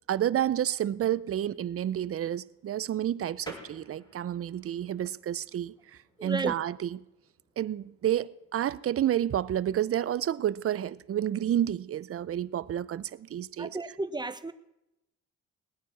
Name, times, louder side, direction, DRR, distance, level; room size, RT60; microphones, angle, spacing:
voice 1, 0.1-5.7 6.2-6.9 7.6-13.7, right 11 dB, 50° right, 0.6 m, -30 dB
sound 1, 3.4-13.6, equal, 15° left, 4.3 m, -55 dB
voice 2, 6.2-6.5 13.6-14.5, right 2 dB, 15° right, 0.9 m, -33 dB
19.0 x 9.2 x 7.1 m
cardioid pair, 90°, 30 cm